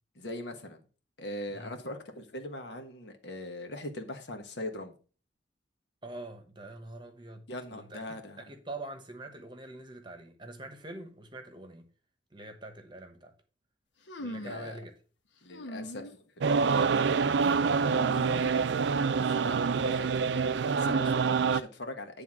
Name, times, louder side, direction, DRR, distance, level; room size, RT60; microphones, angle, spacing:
voice 1, 0.1-0.8 1.2-4.9 7.5-8.4 14.3-14.8 15.4-18.7 19.3-20.4 20.7-22.2, left 1 dB, 70° left, 1.4 m, -42 dB
voice 2, 6.0-7.5 7.7-8.0 8.4-11.9 12.3-13.3 14.2-14.9 19.0-20.2, right 2 dB, 25° right, 1.1 m, -45 dB
sound 1, 14.1-14.7 15.5-16.2 16.5-17.0 17.8-19.0, equal, 85° left, 1.1 m, -42 dB
sound 2, 16.4-21.6, right 5 dB, 70° right, 0.4 m, -26 dB
9.4 x 3.5 x 5.9 m
head